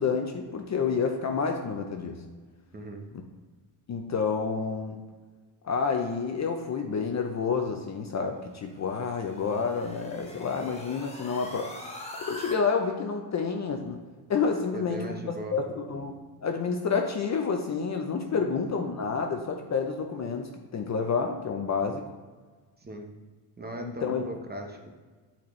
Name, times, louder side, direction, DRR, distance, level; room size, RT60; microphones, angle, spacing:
voice 1, 0.0-2.2 3.9-5.0 5.6-11.7 12.1-14.0 14.3-15.2 15.5-16.2 16.4-22.0 23.8-24.3, left 5 dB, 35° left, 4 dB, 0.6 m, -29 dB
voice 2, 2.7-3.1 14.7-15.6 18.3-18.5 22.8-23.1 23.6-24.9, right 1 dB, 20° right, 2 dB, 0.8 m, -38 dB
sound 1, 8.6-12.6, left 1 dB, 15° left, 1.2 m, -43 dB
8.2 x 4.4 x 3.1 m, 1.4 s
cardioid pair, 110°, 50 cm